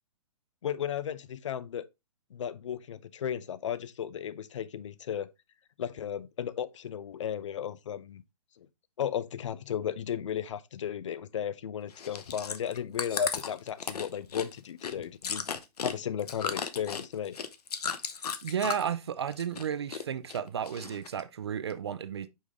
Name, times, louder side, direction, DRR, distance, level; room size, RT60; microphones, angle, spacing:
voice 1, 0.6-1.9 2.3-5.3 5.8-8.2 8.6-8.7 9.0-15.5 15.8-17.4, left 9 dB, 50° left, 0.5 m, -35 dB
Chewing mastication, 11.9-19.0 19.3-20.0 20.3-21.2 21.7-21.8, left 7 dB, 70° left, 0.8 m, -35 dB
voice 2, 18.4-22.3, right 8 dB, 40° right, 0.4 m, -33 dB
5.5 x 5.0 x 3.4 m
hypercardioid pair, 175°, 21 cm